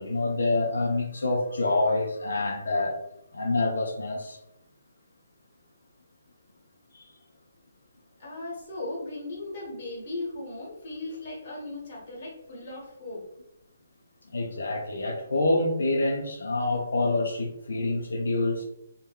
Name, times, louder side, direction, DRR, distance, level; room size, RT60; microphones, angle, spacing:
voice 1, 0.0-3.0 3.3-4.4 6.9-7.0 14.3-18.6, left 2 dB, 85° left, 0 dB, 0.6 m, -27 dB
voice 2, 8.2-13.2, left 2 dB, 35° left, -4 dB, 1.0 m, -37 dB
3.6 x 2.1 x 2.2 m, 0.82 s
hypercardioid pair, 170°, 0 cm